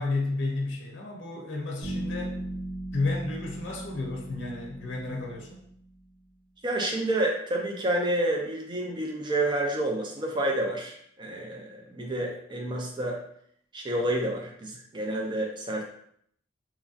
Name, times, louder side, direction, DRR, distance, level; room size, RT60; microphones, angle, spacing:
voice 1, 0.0-2.4 2.9-5.6, left 3 dB, 90° left, 0 dB, 0.5 m, -32 dB
Bass guitar, 1.8-5.8, right 1 dB, 85° right, 1.2 m, -37 dB
voice 2, 6.6-13.2 13.7-15.8, right 1 dB, 25° right, 0 dB, 0.4 m, -29 dB
2.9 x 2.5 x 2.4 m, 0.68 s
head